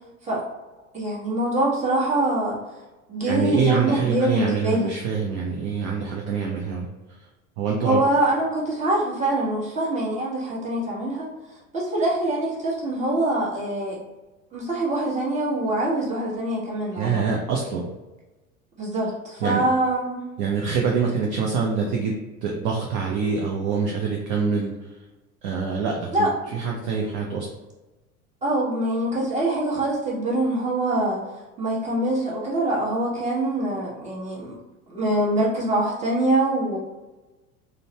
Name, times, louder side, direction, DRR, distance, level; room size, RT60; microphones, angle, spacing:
voice 1, 0.9-2.6 3.1-4.9 7.8-11.3 11.7-14.0 14.5-17.4 18.8-19.1 19.3-20.2 26.1-26.3 28.4-31.2 31.6-34.6 34.9-36.8, right 1 dB, 15° right, -6 dB, 1.1 m, -24 dB
voice 2, 3.2-6.9 7.2-7.3 7.6-8.0 16.9-17.9 19.4-19.6 20.4-22.1 22.4-24.9 25.4-27.5, right 5 dB, 35° right, -1 dB, 0.4 m, -25 dB
3.8 x 2.1 x 2.8 m, 1.1 s
figure-of-eight pair, 80°, 44 cm